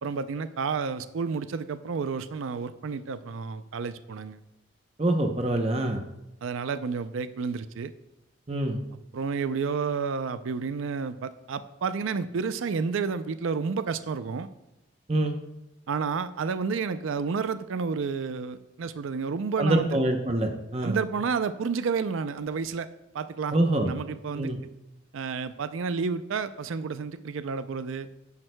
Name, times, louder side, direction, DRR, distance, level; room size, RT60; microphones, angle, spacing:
voice 1, 0.0-4.4 6.4-7.9 9.1-14.5 15.9-20.0 20.8-22.9 23.1-23.6 23.9-24.5 25.1-28.1, right 5 dB, 75° right, 12 dB, 0.4 m, -30 dB
voice 2, 5.0-6.0 8.5-8.8 15.1-15.3 19.6-21.0 23.5-23.9 24.4-24.6, right 1 dB, 30° right, 4 dB, 0.7 m, -25 dB
11.0 x 10.5 x 2.2 m, 0.92 s
head